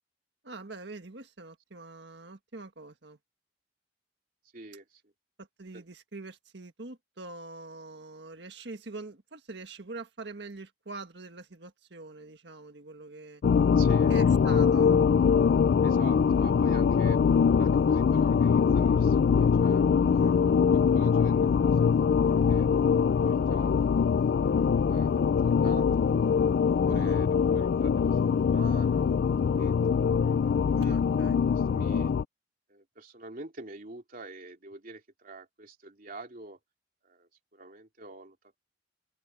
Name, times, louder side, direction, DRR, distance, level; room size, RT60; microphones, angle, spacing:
voice 1, 0.4-3.2 5.4-13.4 14.1-14.9 20.0-20.4 26.9-27.2 30.7-31.4, right 3 dB, 65° right, 1.7 m, -44 dB
voice 2, 4.5-5.1 5.7-5.8 13.8-14.1 15.8-20.6 20.9-23.7 24.3-26.2 26.9-28.1 28.4-31.0 31.7-32.1 32.7-36.6 37.0-38.4, right 2 dB, 50° right, 3.1 m, -47 dB
sound 1, 13.4-32.2, left 6 dB, 60° left, 0.3 m, -23 dB
head